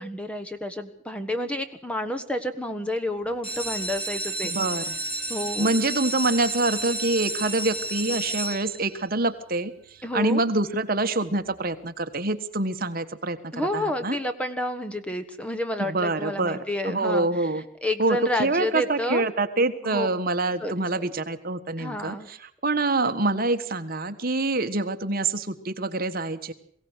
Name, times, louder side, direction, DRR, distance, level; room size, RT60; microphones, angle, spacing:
voice 1, 0.0-4.5 5.3-5.7 10.0-10.4 13.5-17.3 17.8-19.2 19.8-20.1 20.6-21.1 21.8-22.3, left 1 dB, 5° left, 8 dB, 1.3 m, -30 dB
sound 1, 3.3-9.0 9.7-10.2 10.6-10.7 10.9-11.0 11.4-11.5, right 1 dB, 25° left, 5.9 m, -31 dB
voice 2, 4.4-5.0 5.6-14.2 15.8-16.6 16.8-17.6 18.0-26.5, right 2 dB, 45° right, 9 dB, 1.4 m, -26 dB
23.0 x 16.5 x 8.2 m, 0.65 s
head